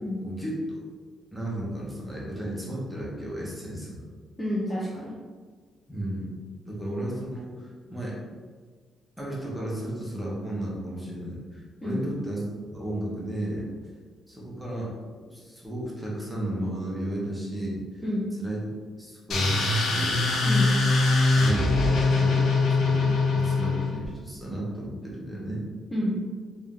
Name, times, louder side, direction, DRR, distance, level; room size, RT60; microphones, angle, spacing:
voice 1, 0.2-0.6 1.3-4.0 5.9-6.4 6.6-8.2 9.2-13.7 14.3-14.9 15.3-18.0 18.4-18.6 19.0-20.2 21.3-25.6, right 1 dB, 5° right, -5 dB, 1.2 m, -34 dB
voice 2, 4.4-5.1 11.8-12.0 18.0-18.3 20.4-20.7 25.9-26.2, left 1 dB, 10° left, -7 dB, 0.8 m, -29 dB
sound 1, 19.3-24.1, left 3 dB, 70° left, 0.8 m, -22 dB
3.5 x 2.8 x 3.7 m, 1.5 s
cardioid pair, 90°, 0 cm